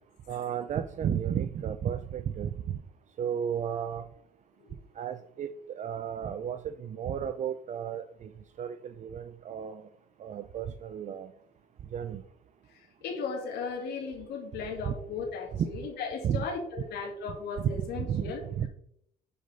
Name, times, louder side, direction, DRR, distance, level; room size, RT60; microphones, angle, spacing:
voice 1, 0.3-2.5 3.2-4.0 5.0-8.3 8.6-9.8 10.2-11.3 11.9-12.2 14.9-15.0 15.5-15.7 16.2-16.4 17.6-18.2 18.5-18.7, right 8 dB, 45° right, 10 dB, 0.6 m, -33 dB
voice 2, 13.0-18.4, left 5 dB, 80° left, 0 dB, 2.3 m, -36 dB
9.7 x 5.2 x 5.2 m, 0.73 s
cardioid pair, 110°, 17 cm